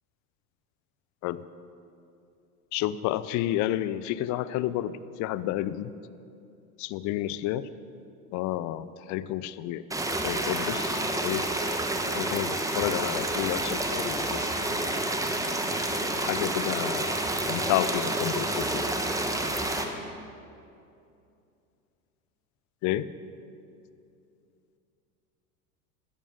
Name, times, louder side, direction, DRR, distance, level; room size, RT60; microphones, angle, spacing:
voice 1, 2.7-5.9 6.8-7.7 8.3-9.8 10.2-11.5 12.1-14.5 16.3-17.2 17.5-18.9 22.8-23.1, left 13 dB, 40° left, 16 dB, 0.6 m, -30 dB
sound 1, 9.9-19.8, right 1 dB, 5° right, 1.3 m, -29 dB
15.5 x 13.5 x 5.2 m, 2.6 s
hypercardioid pair, 80°, 45 cm